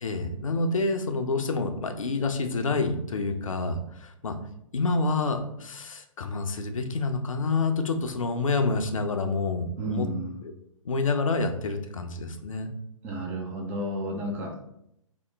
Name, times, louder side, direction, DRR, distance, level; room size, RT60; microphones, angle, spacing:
voice 1, 0.0-4.4 4.7-10.1 10.4-10.5 10.8-12.7, left 3 dB, 70° left, 6 dB, 0.5 m, -28 dB
voice 2, 9.8-10.4 13.0-14.5, right 1 dB, 10° right, -1 dB, 0.3 m, -32 dB
2.8 x 2.1 x 3.4 m, 0.76 s
figure-of-eight pair, 120°, 18 cm